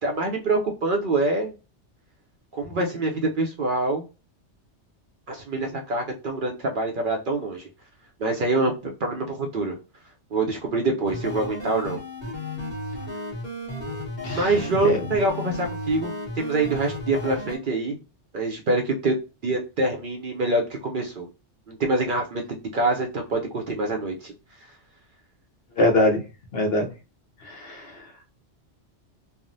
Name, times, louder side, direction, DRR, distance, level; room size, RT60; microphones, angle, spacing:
voice 1, 0.0-1.5 2.5-4.0 5.3-7.7 8.2-9.8 10.3-12.0 14.3-18.0 18.3-19.1 19.4-21.3 21.7-24.3, right 2 dB, 60° right, 2 dB, 0.6 m, -25 dB
sound 1, 11.1-17.6, left 1 dB, 40° left, 1.2 m, -34 dB
voice 2, 25.8-26.2 26.5-26.9 27.4-27.9, left 1 dB, 60° left, 2 dB, 0.9 m, -22 dB
3.3 x 2.0 x 2.5 m, 0.30 s
omnidirectional pair, 1.2 m